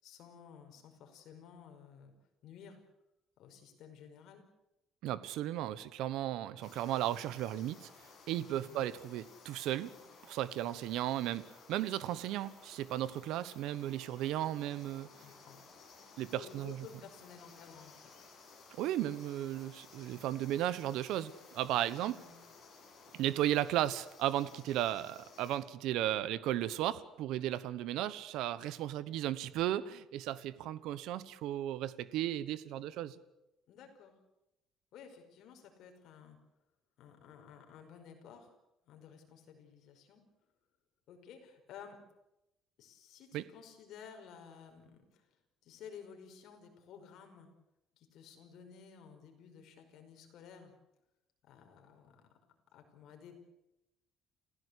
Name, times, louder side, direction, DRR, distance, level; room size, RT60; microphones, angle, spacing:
voice 1, 0.0-2.1 2.4-2.8 3.4-4.4 8.6-8.8 13.2-13.3 15.2-15.6 16.3-18.1 22.1-22.4 33.7-34.2 34.9-36.4 37.0-38.5 38.9-40.2 41.1-42.0 42.8-45.3 45.6-47.5 48.0-50.7 51.4-52.2 52.7-53.4, left 7 dB, 55° left, 4 dB, 5.4 m, -54 dB
voice 2, 5.0-7.9 8.3-9.9 10.2-15.1 16.2-16.8 18.8-22.2 23.1-33.2 43.3-43.4, right 13 dB, 70° right, 16 dB, 1.1 m, -35 dB
sound 1, 6.6-25.6, left 4 dB, 35° left, 7.8 m, -57 dB
29.0 x 16.0 x 8.4 m, 0.91 s
cardioid pair, 175°, 0 cm